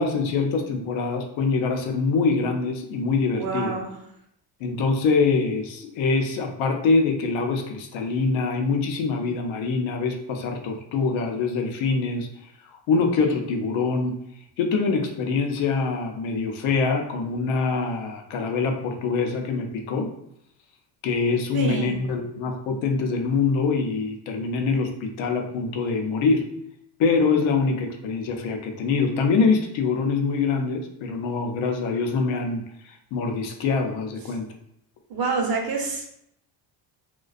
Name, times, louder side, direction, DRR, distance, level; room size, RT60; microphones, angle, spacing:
voice 1, 0.0-3.8 4.6-12.3 12.9-14.1 14.6-20.1 21.0-26.4 27.0-34.5, left 4 dB, 80° left, 4 dB, 0.6 m, -24 dB
voice 2, 3.3-3.9 21.5-21.9 35.1-36.1, right 4 dB, 50° right, 0 dB, 0.7 m, -27 dB
2.4 x 2.2 x 2.4 m, 0.74 s
cardioid pair, 95°, 46 cm